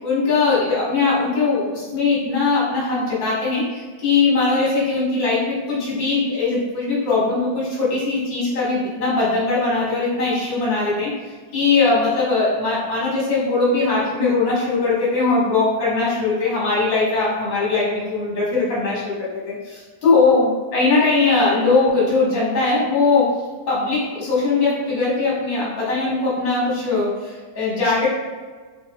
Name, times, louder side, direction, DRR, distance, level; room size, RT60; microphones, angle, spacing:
voice 1, 0.0-11.1 11.5-23.3 23.7-28.1, left 3 dB, 70° left, -8 dB, 2.2 m, -20 dB
4.7 x 3.4 x 2.3 m, 1.4 s
omnidirectional pair, 2.1 m